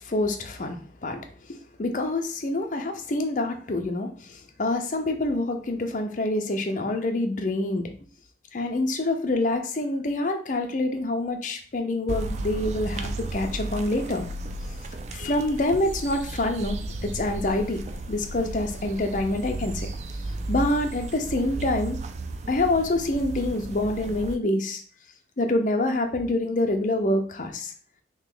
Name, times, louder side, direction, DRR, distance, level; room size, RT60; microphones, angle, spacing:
voice 1, 0.1-1.2 1.8-4.1 4.6-7.9 8.5-14.3 15.1-17.8 18.1-19.9 20.5-22.0 22.5-24.8 25.4-27.7, left 2 dB, 45° left, 4 dB, 0.6 m, -26 dB
sound 1, 12.1-24.3, right 2 dB, 40° right, 0.3 m, -34 dB
3.1 x 2.8 x 3.8 m, 0.43 s
head